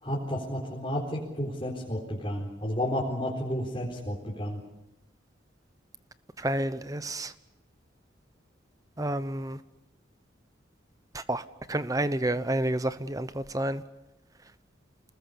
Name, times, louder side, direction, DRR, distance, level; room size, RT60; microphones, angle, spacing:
voice 1, 0.0-4.6, equal, 30° left, -4 dB, 4.2 m, -32 dB
voice 2, 6.4-7.3 9.0-9.6 11.1-13.8, right 1 dB, 20° right, 13 dB, 0.9 m, -30 dB
28.5 x 20.0 x 7.1 m, 0.95 s
head